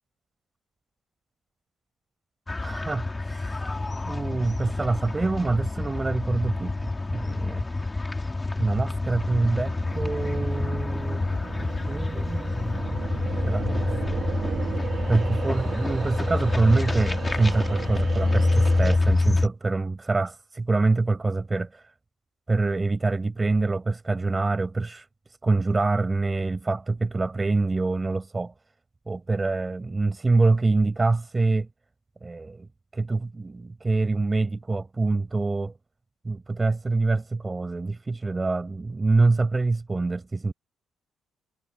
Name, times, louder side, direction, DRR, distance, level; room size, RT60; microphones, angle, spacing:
sound 1, 2.5-19.5, left 2 dB, 20° left, 3.0 m, -27 dB
voice 1, 2.6-3.6 4.1-7.6 8.6-11.2 11.6-12.6 13.4-14.2 15.1-21.9 22.5-25.1 25.4-28.5 29.1-31.7 32.2-32.7 32.9-35.7 36.2-40.5, right 3 dB, 25° right, 5.8 m, -25 dB
sound 2, 9.7-19.0, right 8 dB, 60° right, 3.4 m, -36 dB
cardioid pair, 90°, 0 cm